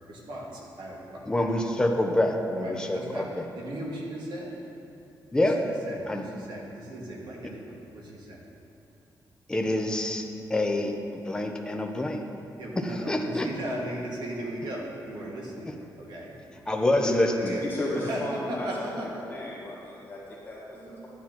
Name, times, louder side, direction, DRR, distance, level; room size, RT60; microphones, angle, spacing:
voice 1, 0.1-1.5 2.6-4.6 5.4-8.4 12.6-16.4 17.1-17.7 18.0-19.2 20.7-21.1, right 1 dB, 75° right, -3 dB, 1.8 m, -37 dB
voice 2, 1.3-3.2 5.3-5.6 6.1-6.2 9.5-10.9 11.3-12.2 12.8-13.5 16.7-17.5, left 1 dB, 10° left, 2 dB, 0.7 m, -26 dB
voice 3, 17.6-18.9 19.3-21.1, left 1 dB, 25° left, -7 dB, 1.5 m, -34 dB
12.5 x 9.5 x 2.9 m, 2.8 s
wide cardioid pair, 150°, 8 cm